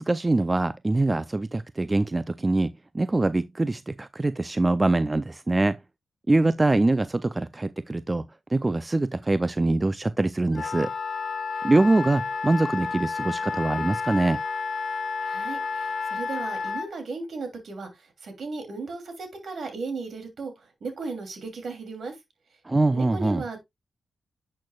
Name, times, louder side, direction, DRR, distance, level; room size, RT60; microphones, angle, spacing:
voice 1, 0.0-5.8 6.3-8.3 8.5-10.9 11.6-14.4 22.6-23.4, right 2 dB, 25° right, 0.4 m, -24 dB
Wind instrument woodwind instrument, 10.5-16.9, left 4 dB, 60° left, 1.4 m, -31 dB
voice 2, 15.2-22.1 22.9-23.6, right 4 dB, 65° right, 3.0 m, -36 dB
10.5 x 6.5 x 2.4 m
supercardioid pair, 45°, 0 cm